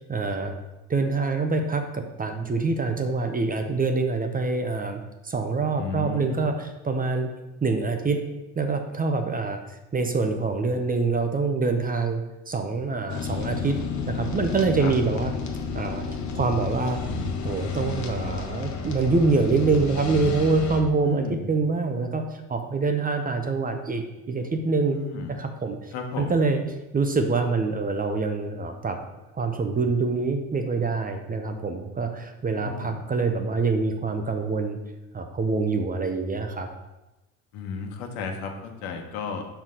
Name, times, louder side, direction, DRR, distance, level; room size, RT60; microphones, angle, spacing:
voice 1, 0.1-0.5 0.9-7.3 7.6-8.2 8.6-9.6 9.9-13.8 14.1-15.3 15.7-17.0 17.4-25.0 25.4-26.6 26.9-29.0 29.4-34.8 35.1-36.7, right 3 dB, 20° right, 6 dB, 0.7 m, -25 dB
voice 2, 5.8-6.6 14.8-14.9 21.0-21.4 24.9-25.4 25.9-26.4 32.5-33.0 37.5-39.5, left 4 dB, 70° left, 3 dB, 1.3 m, -33 dB
sound 1, 13.1-20.8, left 5 dB, 40° left, 1.2 m, -31 dB
5.6 x 4.7 x 3.8 m, 1.0 s
hypercardioid pair, 80°, 43 cm